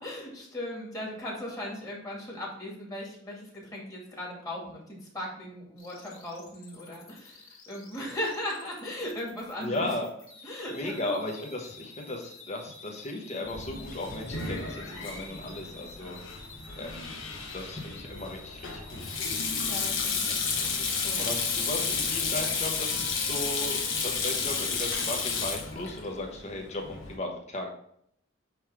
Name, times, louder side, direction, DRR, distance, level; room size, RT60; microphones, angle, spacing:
voice 1, 0.0-9.9 10.4-11.2 19.7-21.2, left 1 dB, 15° left, -3 dB, 2.3 m, -38 dB
sound 1, 5.8-24.0, left 3 dB, 85° left, 2.1 m, -50 dB
voice 2, 9.6-10.1 10.4-16.2 16.8-17.1 17.5-19.0 21.2-27.7, left 1 dB, 35° left, 1 dB, 1.2 m, -36 dB
Sink (filling or washing), 13.5-27.1, left 5 dB, 70° left, 1.3 m, -32 dB
9.6 x 3.3 x 3.5 m, 0.69 s
head